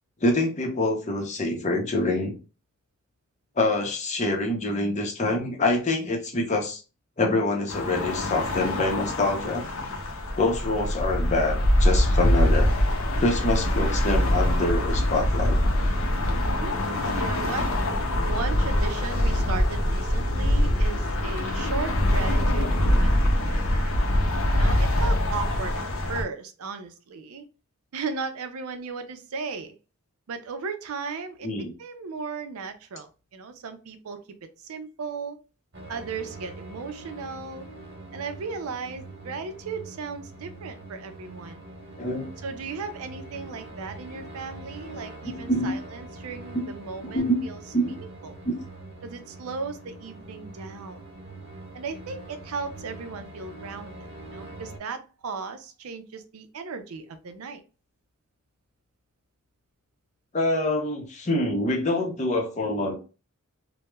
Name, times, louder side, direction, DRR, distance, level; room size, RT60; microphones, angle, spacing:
voice 1, 0.2-2.3 3.6-6.8 7.2-9.6 10.4-12.7 13.2-15.6 31.4-31.7 42.0-42.3 45.2-45.7 46.5-46.7 47.1-47.4 47.7-47.9 48.4-48.5 60.3-62.9, left 2 dB, 35° left, 0.6 m, -25 dB
sound 1, 7.7-26.2, left 1 dB, 75° left, 0.6 m, -24 dB
voice 2, 16.4-17.7 18.3-24.0 24.6-27.4 27.9-29.8 30.3-34.2 34.6-35.4 35.9-37.7 38.1-41.6 42.4-48.4 49.0-51.0 51.7-57.6, right 4 dB, 85° right, 0.5 m, -36 dB
sound 2, 35.7-54.8, right 2 dB, 55° right, 1.0 m, -43 dB
3.0 x 2.0 x 2.2 m
head